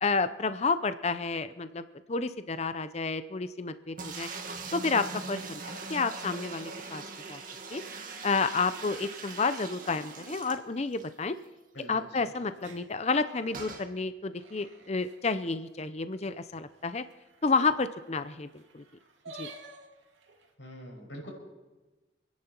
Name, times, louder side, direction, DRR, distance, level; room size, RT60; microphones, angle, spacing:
voice 1, 0.0-4.3 4.7-7.0 7.3-7.4 7.7-7.8 8.2-11.3 11.9-17.0 17.4-18.8 19.4-19.5, left 4 dB, 35° left, 12 dB, 0.6 m, -30 dB
sound 1, 4.0-11.1 11.5-11.6 11.8-11.9 13.5-13.9, right 4 dB, 45° right, 1.8 m, -41 dB
voice 2, 11.7-12.3 20.6-21.3, equal, 75° left, -1 dB, 6.1 m, -44 dB
sound 2, 12.3-15.4 15.9-16.0 16.2-16.3 16.5-20.5, right 2 dB, 85° right, 2.4 m, -52 dB
27.5 x 10.5 x 4.5 m, 1.2 s
head